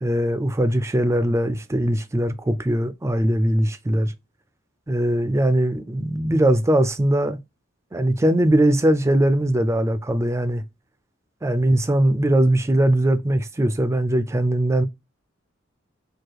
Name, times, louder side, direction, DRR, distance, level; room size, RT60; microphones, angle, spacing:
voice 1, 0.0-4.1 4.9-7.4 7.9-10.6 11.4-14.9, right 1 dB, 15° right, 0.4 m, -20 dB
4.7 x 2.3 x 4.6 m
head